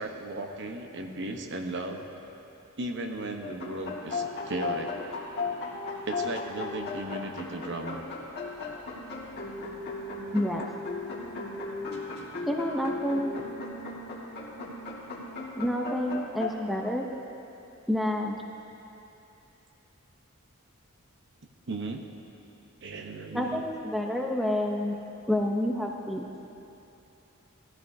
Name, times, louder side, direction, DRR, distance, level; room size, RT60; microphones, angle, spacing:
voice 1, 0.0-2.1 2.8-4.9 6.0-8.0 21.7-22.0 22.8-23.6, right 2 dB, 55° right, 4 dB, 0.9 m, -36 dB
sound 1, 3.4-16.5, left 3 dB, 50° left, 1.8 m, -36 dB
voice 2, 10.3-10.7 12.5-13.4 15.6-17.1 17.9-18.4 23.3-25.0 25.3-26.3, left 1 dB, ahead, 0 dB, 0.7 m, -28 dB
18.0 x 14.0 x 2.7 m, 2.8 s
head